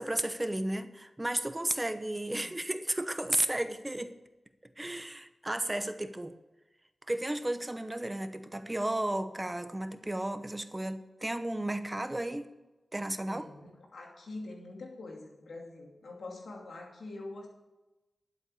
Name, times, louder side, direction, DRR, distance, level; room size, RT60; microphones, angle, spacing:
voice 1, 0.0-4.1 4.8-6.3 7.1-12.5 12.9-13.5, right 1 dB, 20° right, 10 dB, 0.9 m, -33 dB
voice 2, 13.3-17.5, left 2 dB, 90° left, 0 dB, 2.6 m, -45 dB
12.0 x 7.9 x 6.9 m, 1.1 s
wide cardioid pair, 70°, 0 cm